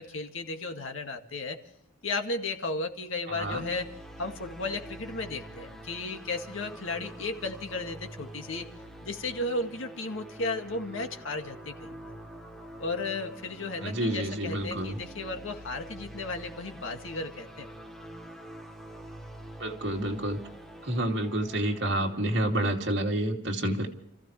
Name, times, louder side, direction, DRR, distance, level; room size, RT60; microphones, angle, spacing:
voice 1, 0.0-1.6 2.0-3.9 4.2-8.7 9.0-12.2 12.8-17.7, left 2 dB, 80° left, 4 dB, 2.0 m, -34 dB
voice 2, 3.3-3.7 13.8-15.0 19.6-20.4 20.8-23.9, right 1 dB, 60° right, 1 dB, 2.6 m, -29 dB
sound 1, 3.4-22.9, right 1 dB, ahead, 1.5 m, -46 dB
29.0 x 15.5 x 3.2 m, 0.79 s
head